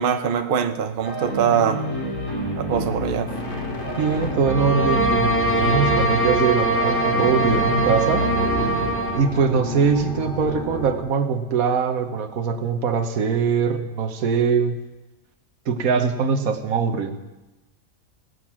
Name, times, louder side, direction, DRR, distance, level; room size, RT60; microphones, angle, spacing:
voice 1, 0.0-1.8 2.6-3.3, right 8 dB, 50° right, 0.8 m, -22 dB
sound 1, 1.0-8.9, equal, 60° left, 3.6 m, -28 dB
sound 2, 3.3-11.0, left 1 dB, 40° left, 1.8 m, -32 dB
voice 2, 4.0-8.3 9.1-14.7 15.7-17.2, right 6 dB, 80° right, 1.4 m, -22 dB
sound 3, 4.4-9.3, right 1 dB, 10° left, 0.7 m, -22 dB
19.0 x 7.9 x 5.9 m
omnidirectional pair, 1.5 m